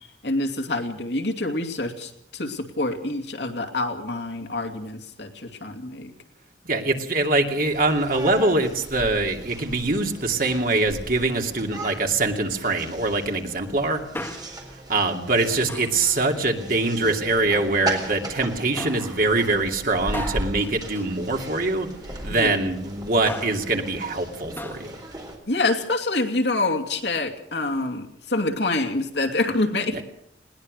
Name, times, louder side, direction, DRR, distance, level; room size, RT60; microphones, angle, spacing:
voice 1, 0.2-6.1 22.3-22.6 25.5-30.0, left 2 dB, 65° left, 5 dB, 2.6 m, -26 dB
voice 2, 6.6-14.0 14.9-21.9 22.2-24.9 29.9-30.0, right 2 dB, 50° right, 3 dB, 2.6 m, -23 dB
sound 1, 7.6-25.4, right 1 dB, 20° right, 4.1 m, -37 dB
Male speech man speaking, 14.1-14.7 15.7-16.1 16.9-17.7 18.8-19.1 20.1-21.8 23.0-23.7 24.6-24.9 25.2-25.3, left 1 dB, 10° left, 1.6 m, -37 dB
20.5 x 19.0 x 6.6 m, 0.72 s
head